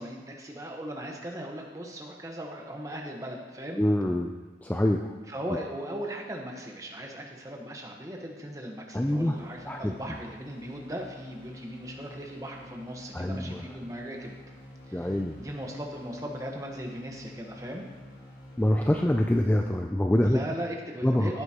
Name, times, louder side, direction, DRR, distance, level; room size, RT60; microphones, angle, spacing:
voice 1, 0.0-3.8 5.3-14.4 14.9-17.8 20.2-21.4, equal, 20° right, 0 dB, 1.2 m, -38 dB
voice 2, 3.8-4.3 4.6-5.1 8.9-9.3 9.7-9.9 13.1-13.7 14.9-15.4 18.6-20.4 21.0-21.3, left 1 dB, 10° left, 3 dB, 0.3 m, -25 dB
sound 1, 9.2-19.8, left 1 dB, 50° left, 2.5 m, -49 dB
14.5 x 7.9 x 2.9 m, 1.3 s
head